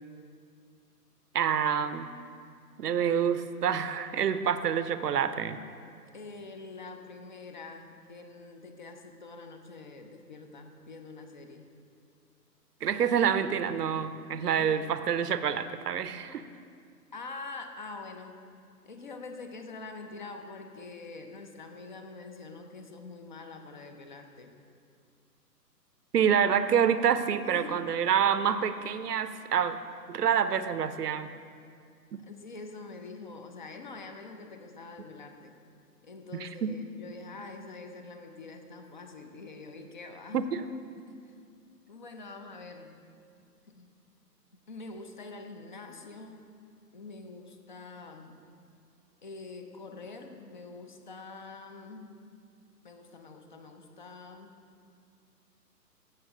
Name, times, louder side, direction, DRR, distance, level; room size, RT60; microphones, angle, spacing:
voice 1, 1.3-2.1 2.8-5.6 12.8-16.4 26.1-29.8 30.1-31.3 32.1-32.2 36.4-36.7 40.3-40.4, right 8 dB, 70° right, 12 dB, 0.7 m, -27 dB
voice 2, 2.9-3.2 6.1-11.7 14.5-14.8 17.1-18.3 18.8-24.5 27.5-27.8 32.2-35.6 36.0-40.5 41.1-41.3 41.9-42.9 43.6-43.9 44.7-46.5 46.9-48.4 49.2-52.2 52.8-54.5, left 3 dB, 30° left, 5 dB, 0.6 m, -45 dB
16.0 x 7.0 x 3.7 m, 2.3 s
figure-of-eight pair, 140°, 49 cm